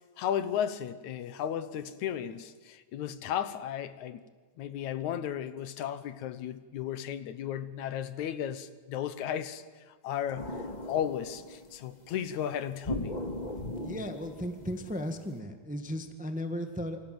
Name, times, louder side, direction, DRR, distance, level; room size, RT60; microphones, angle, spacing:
voice 1, 0.0-4.3 4.6-13.1, left 9 dB, 80° left, 2.4 m, -35 dB
sound 1, 10.4-11.8 12.8-15.3, left 1 dB, 15° left, 2.0 m, -38 dB
voice 2, 13.8-17.0, equal, 5° right, 1.1 m, -36 dB
28.5 x 25.0 x 7.9 m
omnidirectional pair, 3.4 m